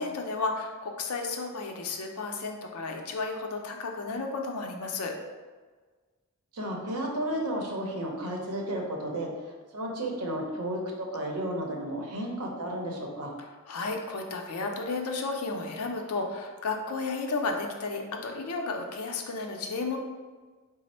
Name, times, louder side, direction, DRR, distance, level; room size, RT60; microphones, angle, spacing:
voice 1, 0.0-5.1 13.4-20.0, left 3 dB, 80° left, 3 dB, 0.5 m, -33 dB
voice 2, 6.5-13.3, right 1 dB, 90° right, 0 dB, 0.7 m, -33 dB
4.1 x 2.0 x 4.1 m, 1.4 s
head